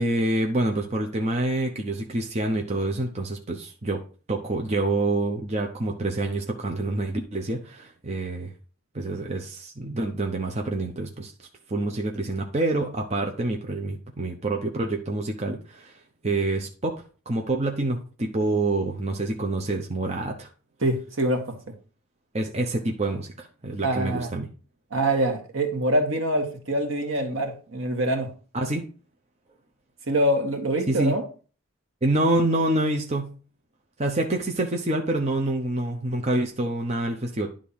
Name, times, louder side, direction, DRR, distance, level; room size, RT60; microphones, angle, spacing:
voice 1, 0.0-4.0 4.3-8.5 8.9-11.3 11.7-15.9 16.2-20.5 22.3-24.5 28.5-28.8 30.9-31.2 32.0-33.4 34.0-37.5, right 2 dB, 30° right, 0.9 m, -27 dB
voice 2, 20.8-21.7 23.8-24.3 24.9-28.3 30.1-31.2, right 1 dB, 75° right, 1.6 m, -25 dB
10.5 x 3.7 x 5.5 m
head